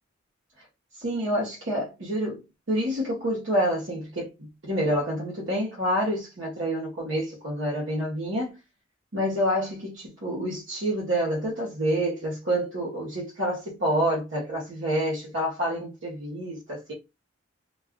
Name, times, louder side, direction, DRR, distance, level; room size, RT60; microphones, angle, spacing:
voice 1, 1.0-4.3 4.6-8.6 9.1-16.9, equal, 70° right, 1.0 m, -28 dB
2.3 x 2.3 x 3.5 m
head